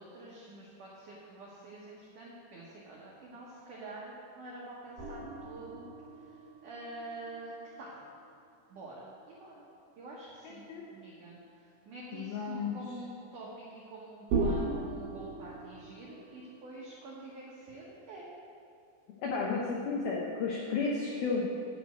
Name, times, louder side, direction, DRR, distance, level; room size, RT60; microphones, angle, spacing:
voice 1, 0.0-5.9 6.2-8.0 8.7-9.1 9.4-9.7 10.0-18.3, right 2 dB, 80° right, -5 dB, 1.8 m, -47 dB
sound 1, 5.0-8.5 8.7-8.8 14.3-16.6, right 3 dB, 60° right, 3.3 m, -37 dB
voice 2, 10.4-10.9 12.1-12.8 19.2-21.5, left 4 dB, 90° left, -2 dB, 2.1 m, -33 dB
10.5 x 5.2 x 7.9 m, 2.6 s
omnidirectional pair, 5.6 m